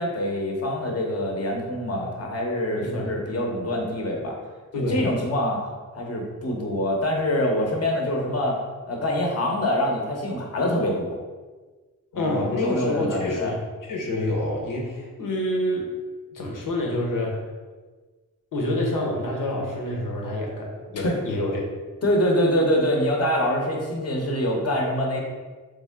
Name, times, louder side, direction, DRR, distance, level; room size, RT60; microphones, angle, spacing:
voice 1, 0.0-4.4 4.7-5.6 5.9-8.6 8.9-11.1 12.1-13.5 21.0-21.1 22.0-25.2, left 1 dB, 50° left, 0 dB, 1.0 m, -25 dB
voice 2, 2.8-3.2 4.7-5.1 12.1-13.6 13.9-15.9 16.3-17.4 18.5-21.6, left 1 dB, 85° left, -1 dB, 1.1 m, -27 dB
3.7 x 3.6 x 3.6 m, 1.3 s
cardioid pair, 85°, 31 cm